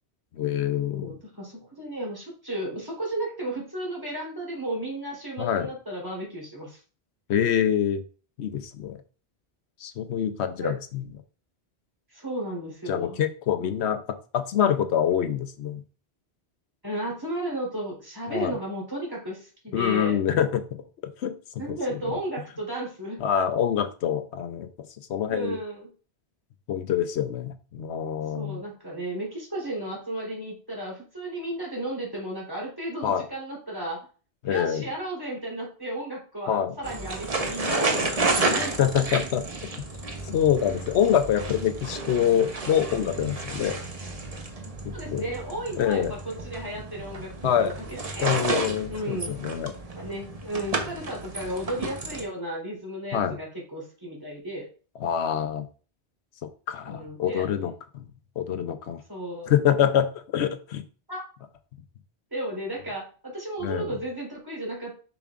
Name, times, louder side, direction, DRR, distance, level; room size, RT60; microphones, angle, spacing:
voice 1, 0.3-1.2 5.4-5.7 7.3-8.0 8.4-9.0 9.8-11.0 12.9-14.0 14.3-15.8 18.3-18.6 19.7-20.8 21.2-21.3 21.9-22.2 23.2-24.7 25.1-25.6 26.7-28.6 33.0-33.2 34.4-34.9 36.5-36.7 38.8-39.4 39.8-39.9 40.3-43.8 44.8-45.2 45.8-46.1 47.4-47.7 48.2-49.7 53.1-53.4 55.0-55.7 56.7-58.1 58.4-59.0 59.5-60.8 63.6-63.9, left 9 dB, 85° left, 9 dB, 1.0 m, -25 dB
voice 2, 0.9-6.8 10.6-10.7 12.1-13.1 13.6-13.7 16.8-20.2 21.6-23.2 25.3-25.9 28.3-34.0 34.4-38.7 44.9-46.2 46.4-47.7 48.1-48.3 48.9-49.3 49.9-54.7 56.8-57.7 59.1-59.5 61.1-61.2 62.3-64.9, right 1 dB, 20° right, -4 dB, 3.5 m, -34 dB
sound 1, 36.8-52.2, right 3 dB, 35° right, 1.0 m, -31 dB
7.0 x 6.1 x 2.5 m, 0.38 s
omnidirectional pair, 1.1 m